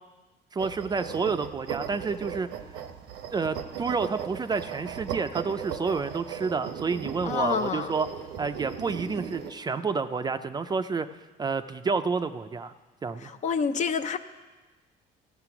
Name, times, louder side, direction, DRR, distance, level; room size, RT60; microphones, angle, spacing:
voice 1, 0.5-2.5 3.3-8.1 8.4-11.1 11.4-12.7 13.0-13.3, right 5 dB, 25° right, 10 dB, 0.4 m, -29 dB
sound 1, 0.6-9.5, right 8 dB, 90° right, 0.8 m, -37 dB
voice 2, 7.2-7.9 13.2-14.2, left 6 dB, 45° left, 10 dB, 0.6 m, -28 dB
14.0 x 6.7 x 5.9 m, 1.2 s
cardioid pair, 110°, 17 cm